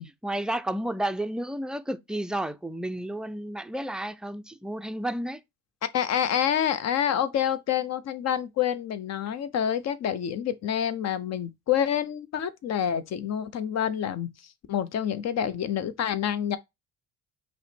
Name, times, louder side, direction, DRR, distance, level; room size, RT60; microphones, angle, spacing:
voice 1, 0.2-5.4, right 1 dB, 5° right, 0.3 m, -31 dB
voice 2, 5.9-14.3 14.7-16.6, left 9 dB, 60° left, 0.6 m, -27 dB
5.5 x 2.2 x 4.3 m
cardioid pair, 90°, 30 cm